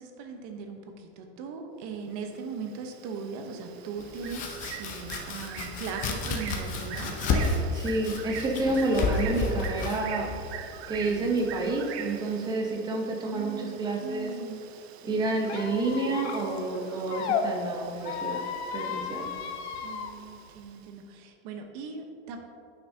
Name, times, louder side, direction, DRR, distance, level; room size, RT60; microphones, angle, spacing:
voice 1, 0.0-4.4 4.7-7.2 13.2-14.6 19.8-22.4, right 5 dB, 40° right, 4 dB, 0.9 m, -39 dB
Bird, 2.2-20.9, right 9 dB, 75° right, 0.6 m, -44 dB
Domestic sounds home sounds, 4.0-11.7, left 3 dB, 25° left, 0.6 m, -32 dB
voice 2, 7.7-10.3 10.9-14.3 15.0-18.4 18.7-19.3, right 2 dB, 10° right, 0 dB, 0.7 m, -29 dB
Squeak, 15.4-17.4 18.0-20.1, left 8 dB, 80° left, 0.7 m, -34 dB
10.0 x 6.0 x 2.7 m, 2.5 s
supercardioid pair, 160°, 32 cm